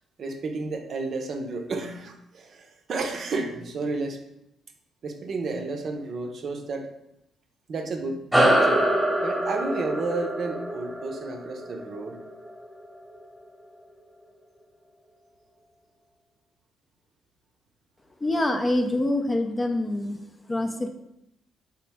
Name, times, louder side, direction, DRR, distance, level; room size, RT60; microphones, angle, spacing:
voice 1, 0.2-4.2 5.0-6.9 7.7-8.9 9.2-12.2, right 3 dB, 55° right, 4 dB, 0.6 m, -32 dB
sound 1, 8.3-13.1, right 1 dB, 5° right, 1.1 m, -25 dB
voice 2, 18.2-20.2 20.5-20.9, left 1 dB, 20° left, 5 dB, 0.4 m, -25 dB
3.9 x 2.9 x 3.5 m, 0.82 s
cardioid pair, 90°, 0 cm